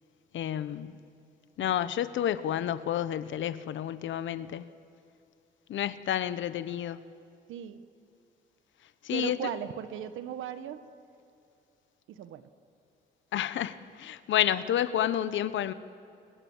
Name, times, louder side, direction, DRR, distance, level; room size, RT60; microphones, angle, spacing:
voice 1, 0.3-0.9 1.6-4.6 5.7-7.0 9.0-9.4 13.3-15.7, left 11 dB, 70° left, 13 dB, 1.1 m, -30 dB
voice 2, 1.6-1.9 7.5-7.8 9.1-10.8 12.1-12.5, right 10 dB, 85° right, 11 dB, 1.4 m, -37 dB
29.5 x 26.0 x 7.4 m, 2.5 s
cardioid pair, 90°, 20 cm